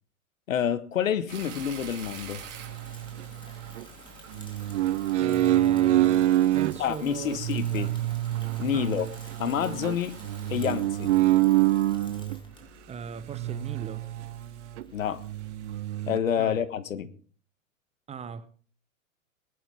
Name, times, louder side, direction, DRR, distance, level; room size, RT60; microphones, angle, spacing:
voice 1, 0.5-2.4 6.8-7.9 8.6-9.1 9.4-10.2 10.5-11.1 14.9-15.2 16.1-17.1, left 8 dB, 65° left, 1.6 m, -28 dB
sound 1, 1.3-10.7, right 8 dB, 35° right, 4.1 m, -48 dB
Bicycle / Mechanisms, 1.5-15.8, left 3 dB, 10° left, 3.4 m, -51 dB
sound 2, 2.6-3.8 4.3-6.8 7.4-12.4 13.3-14.5 14.8-14.9 15.2-16.2, right 14 dB, 55° right, 0.8 m, -26 dB
voice 2, 5.2-7.4 7.7-7.9 8.7-8.9 12.9-14.1 16.4-16.6 18.1-18.5, right 6 dB, 15° right, 0.9 m, -39 dB
20.5 x 11.5 x 3.6 m
figure-of-eight pair, 100°, 42 cm